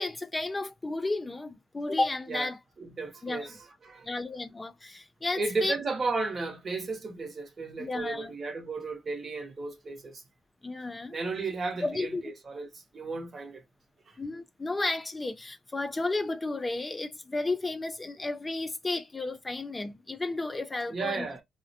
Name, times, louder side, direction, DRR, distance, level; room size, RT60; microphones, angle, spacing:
voice 1, 0.0-2.6 3.2-3.5 4.0-5.8 7.8-8.3 10.6-11.2 11.8-12.2 14.2-21.3, left 2 dB, 20° left, 0.3 m, -32 dB
voice 2, 2.8-3.6 3.8-4.1 5.4-10.2 11.1-13.6 14.1-14.2 20.9-21.4, right 3 dB, 40° right, 0.8 m, -34 dB
2.4 x 2.0 x 2.5 m
cardioid pair, 90°, 0 cm